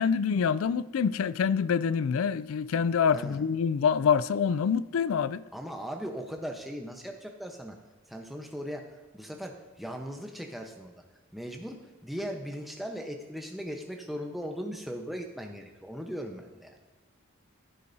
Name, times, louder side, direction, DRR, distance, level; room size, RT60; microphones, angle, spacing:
voice 1, 0.0-5.4, left 6 dB, 80° left, 0.4 m, -26 dB
voice 2, 3.1-3.5 5.5-7.8 8.1-8.9 9.1-10.9 11.3-11.8 12.0-16.7, equal, ahead, 0.9 m, -38 dB
14.5 x 8.5 x 2.7 m
head